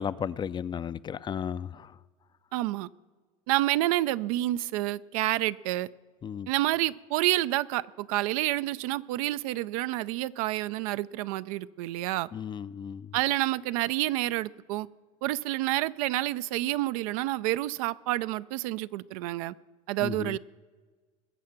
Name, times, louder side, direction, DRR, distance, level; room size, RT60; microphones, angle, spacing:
voice 1, 0.0-1.9 6.2-6.5 12.3-13.1 20.0-20.4, left 8 dB, 25° left, 0.4 m, -34 dB
voice 2, 2.5-2.9 3.5-5.9 6.5-12.3 13.1-14.9 15.2-19.5 19.9-20.4, right 16 dB, 80° right, 0.4 m, -29 dB
20.5 x 7.5 x 5.9 m
supercardioid pair, 100°, 18 cm